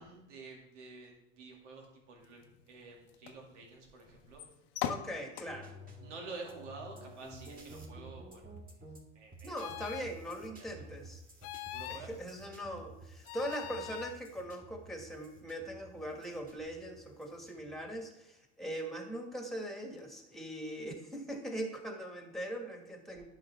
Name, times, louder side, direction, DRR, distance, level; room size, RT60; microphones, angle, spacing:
voice 1, 0.0-4.4 6.0-8.5 9.1-9.5 10.2-10.3 10.6-10.9 11.7-12.1, right 3 dB, 80° right, 0 dB, 2.2 m, -49 dB
sound 1, 2.2-22.0, left 10 dB, 60° left, 0.9 m, -50 dB
voice 2, 4.8-5.7 9.4-11.2 11.9-23.2, equal, ahead, 3 dB, 1.7 m, -41 dB
sound 2, 5.5-18.0, right 1 dB, 25° right, 2.4 m, -52 dB
sound 3, 9.6-10.1 11.4-12.1 13.2-14.2, left 15 dB, 45° left, 0.4 m, -43 dB
11.0 x 5.1 x 3.4 m, 0.90 s
hypercardioid pair, 95°, 35 cm